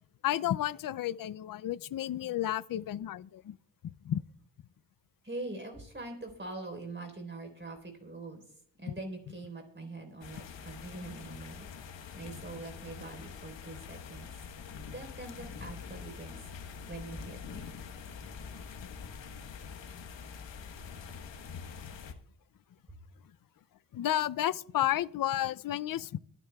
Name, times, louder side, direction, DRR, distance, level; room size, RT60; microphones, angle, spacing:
voice 1, 0.2-3.6 3.8-4.2 23.9-26.2, left 12 dB, 50° left, 0.5 m, -32 dB
voice 2, 5.2-8.4 8.8-11.7 12.1-14.3 14.9-16.5 16.8-17.7 22.9-23.0, right 2 dB, 25° right, 3.8 m, -43 dB
sound 1, 10.2-22.1, left 6 dB, 85° left, 1.3 m, -45 dB
24.0 x 9.8 x 2.3 m
wide cardioid pair, 95°, 43 cm